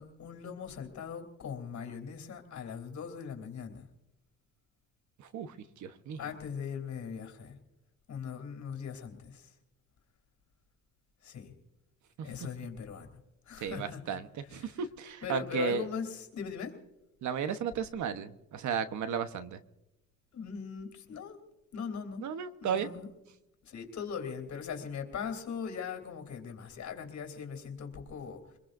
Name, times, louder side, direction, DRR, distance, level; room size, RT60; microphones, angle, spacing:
voice 1, 0.0-3.9 6.2-7.6 8.1-9.5 11.2-11.5 12.2-13.1 13.5-14.7 15.2-16.7 20.3-21.4 21.7-22.3 22.6-23.1 23.6-28.4, left 6 dB, 65° left, 4 dB, 3.4 m, -40 dB
voice 2, 5.2-5.5 5.8-6.2 12.2-12.3 13.6-15.8 17.2-19.6 22.2-22.9, right 7 dB, 70° right, 10 dB, 1.2 m, -34 dB
25.0 x 21.5 x 2.6 m, 0.93 s
cardioid pair, 90°, 30 cm